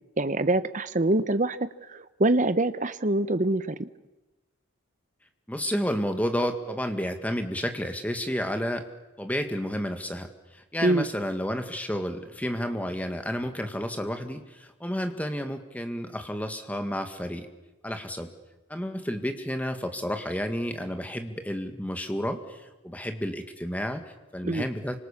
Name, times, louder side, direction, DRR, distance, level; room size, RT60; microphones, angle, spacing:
voice 1, 0.2-1.6 2.2-3.9 10.8-11.1 24.4-24.6, right 2 dB, 35° right, 13 dB, 0.9 m, -24 dB
voice 2, 5.5-8.9 9.2-17.5 17.8-18.3 18.7-25.0, equal, 5° left, 6 dB, 1.9 m, -31 dB
28.5 x 25.5 x 7.3 m, 1.1 s
head